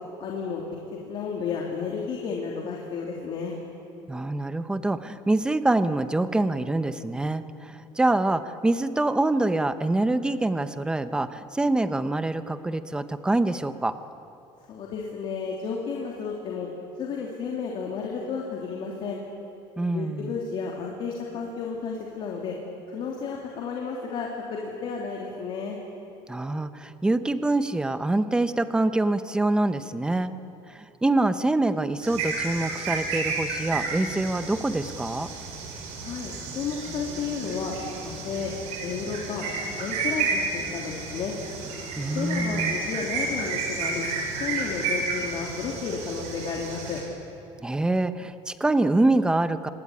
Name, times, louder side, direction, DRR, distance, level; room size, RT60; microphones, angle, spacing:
voice 1, 0.2-0.6 1.0-3.5 14.7-16.7 17.0-19.2 19.9-22.5 22.9-25.8 36.0-37.7 38.0-38.5 38.8-39.4 39.8-41.4 42.1-44.1 44.4-47.0, left 5 dB, 45° left, -1 dB, 3.1 m, -32 dB
voice 2, 4.1-13.9 19.8-20.3 26.3-30.4 30.7-35.3 42.0-42.8 47.6-49.7, right 2 dB, 5° right, 11 dB, 0.8 m, -25 dB
sound 1, 32.0-47.0, right 4 dB, 65° right, 7.4 m, -31 dB
26.5 x 19.5 x 9.9 m, 2.8 s
cardioid pair, 165°, 12 cm